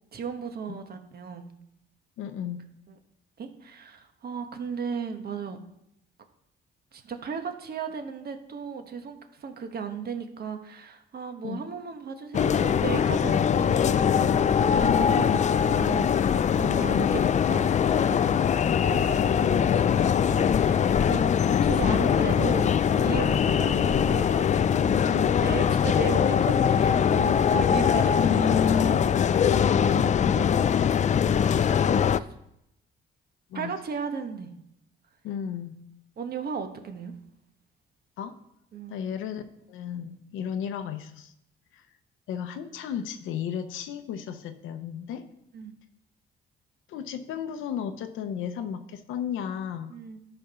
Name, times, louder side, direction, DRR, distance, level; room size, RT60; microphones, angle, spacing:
voice 1, 0.1-1.5 2.9-3.0 3.4-5.6 6.9-14.9 15.2-28.3 28.6-28.8 29.7-30.5 31.3-32.3 33.5-34.5 36.2-37.1 38.7-39.0 45.5-45.8 49.9-50.3, right 6 dB, 50° right, 6 dB, 1.2 m, -36 dB
voice 2, 2.2-2.6 11.4-11.6 14.7-15.4 19.5-20.1 25.0-25.3 28.2-28.9 33.5-33.7 35.2-35.8 38.2-38.4 38.9-41.3 41.7-41.9 42.3-45.3 46.9-49.9, left 8 dB, 85° left, 9 dB, 0.7 m, -33 dB
sound 1, 12.3-32.2, left 8 dB, 35° left, 0.4 m, -22 dB
12.0 x 4.4 x 5.6 m, 0.80 s
cardioid pair, 90°, 20 cm